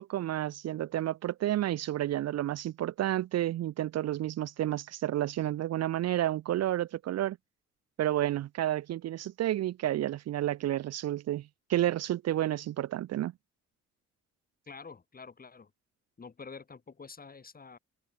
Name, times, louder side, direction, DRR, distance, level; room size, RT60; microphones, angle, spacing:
voice 1, 0.0-7.4 8.0-13.3, right 13 dB, 55° right, 0.6 m, -31 dB
voice 2, 14.7-15.7 16.2-17.8, left 5 dB, 30° left, 2.1 m, -47 dB
cardioid pair, 90°, 30 cm